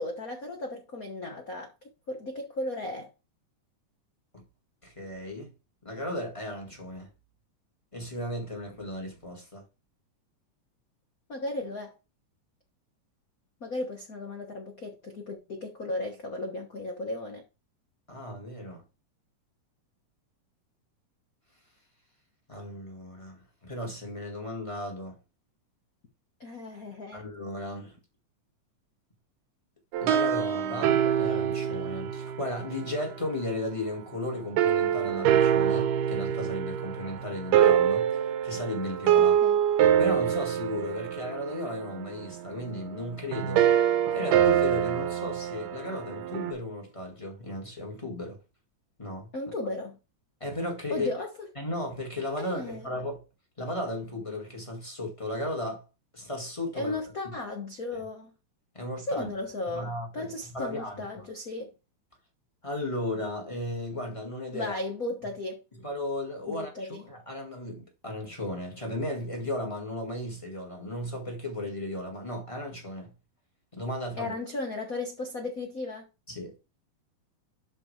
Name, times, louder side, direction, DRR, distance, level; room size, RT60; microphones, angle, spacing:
voice 1, 0.0-1.7 2.1-3.1 11.3-11.9 13.6-17.4 26.4-27.2 39.2-39.6 49.3-50.0 50.9-51.3 52.4-52.8 56.7-58.3 59.1-61.7 64.5-65.6 66.5-67.0 74.2-76.1, left 2 dB, 70° left, 0.8 m, -35 dB
voice 2, 4.8-5.5 5.8-7.1 7.9-9.6 18.1-18.8 22.5-25.2 27.1-27.9 30.0-38.1 38.4-39.4 40.0-43.6 44.1-48.4 49.0-49.3 50.4-51.1 51.5-53.2 53.6-55.8 56.1-56.9 57.2-57.3 58.7-59.3 59.7-61.0 62.6-64.8 65.8-73.1 73.7-74.3 76.3-76.5, left 1 dB, 15° left, 1.4 m, -35 dB
sound 1, 29.9-33.3 34.6-46.5, right 9 dB, 85° right, 2.6 m, -25 dB
12.0 x 4.4 x 3.3 m
omnidirectional pair, 3.7 m